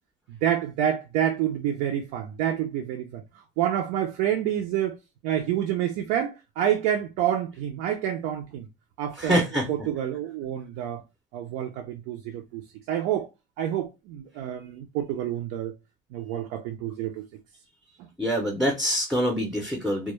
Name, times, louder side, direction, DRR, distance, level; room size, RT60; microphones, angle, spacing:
voice 1, 0.3-3.2 3.6-5.0 5.2-8.7 9.0-11.0 11.3-13.3 13.6-15.7 16.1-17.3 18.0-18.1, right 10 dB, 85° right, 0.4 m, -28 dB
voice 2, 9.2-9.7 18.2-20.1, equal, ahead, 0.4 m, -25 dB
2.2 x 2.0 x 3.0 m
cardioid pair, 150°, 18 cm